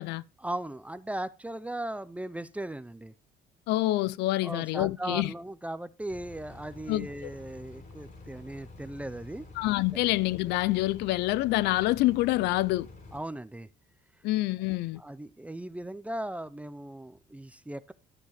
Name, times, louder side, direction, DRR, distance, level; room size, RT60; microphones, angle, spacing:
voice 1, 0.4-3.1 4.4-9.5 13.1-13.7 15.0-17.9, right 1 dB, 10° right, 0.5 m, -38 dB
voice 2, 3.7-5.3 6.9-7.1 9.6-12.9 14.2-15.0, left 17 dB, 85° left, 0.5 m, -27 dB
sound 1, 6.1-13.2, left 3 dB, 45° left, 3.6 m, -48 dB
12.0 x 6.8 x 4.3 m
cardioid pair, 110°, 17 cm